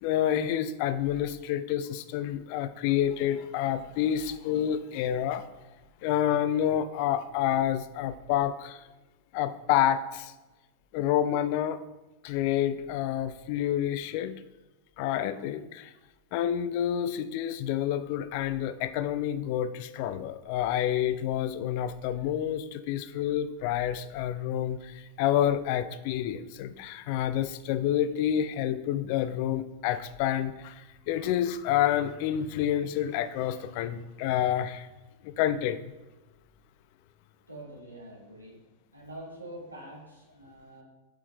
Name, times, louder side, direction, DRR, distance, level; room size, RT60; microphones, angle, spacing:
voice 1, 0.0-5.4 6.0-8.8 9.3-10.3 10.9-11.8 12.2-14.4 15.0-15.9 16.3-34.9 35.2-35.9, left 11 dB, 45° left, 12 dB, 0.4 m, -28 dB
voice 2, 37.5-38.6 38.9-40.8, right 1 dB, 85° right, -4 dB, 1.9 m, -45 dB
5.6 x 4.4 x 3.9 m, 1.1 s
figure-of-eight pair, 90°, 0 cm